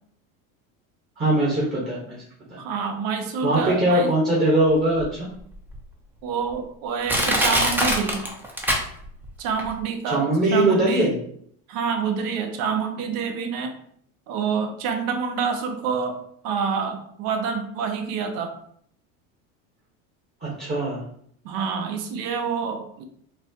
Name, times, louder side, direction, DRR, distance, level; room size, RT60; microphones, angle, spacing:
voice 1, 1.2-2.2 2.5-2.6 3.4-5.0 10.1-11.1 20.4-21.0, right 1 dB, 20° right, -6 dB, 1.2 m, -21 dB
voice 2, 2.6-4.1 6.2-8.3 9.4-11.1 11.7-13.8 14.3-18.6 21.4-23.0, right 6 dB, 55° right, 6 dB, 0.8 m, -27 dB
Crushing, 5.0-5.1 5.7-5.8 6.5-6.6 7.1-9.3 9.6-9.7, equal, 5° right, 0.6 m, -22 dB
4.2 x 2.2 x 2.8 m, 0.64 s
supercardioid pair, 105°, 42 cm